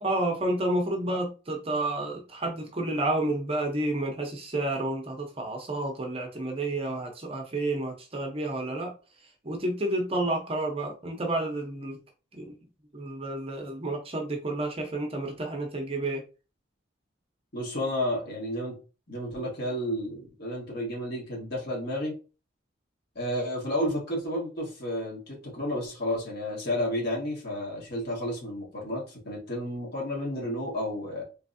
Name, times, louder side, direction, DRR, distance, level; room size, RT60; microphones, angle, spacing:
voice 1, 0.0-8.9 9.4-12.0 12.3-12.6 12.9-16.2, right 2 dB, 30° right, 1 dB, 0.7 m, -30 dB
voice 2, 17.5-18.7 19.1-22.2 23.2-31.2, left 1 dB, 50° left, -3 dB, 1.6 m, -31 dB
3.3 x 3.2 x 2.6 m, 0.33 s
head